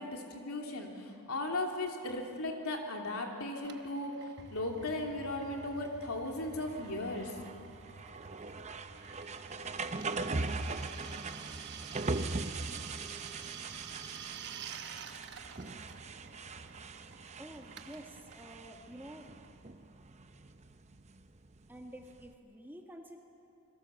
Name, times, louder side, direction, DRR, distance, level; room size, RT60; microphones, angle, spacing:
voice 1, 0.0-4.2 4.5-7.3, left 2 dB, 70° left, 2 dB, 2.9 m, -37 dB
Drill, 3.6-20.0, right 8 dB, 50° right, 1.0 m, -50 dB
sound 1, 4.4-22.3, right 3 dB, 30° right, 0.8 m, -41 dB
voice 2, 17.4-19.3 21.7-23.2, right 1 dB, 10° right, 2 dB, 1.5 m, -49 dB
26.5 x 22.0 x 7.1 m, 2.8 s
head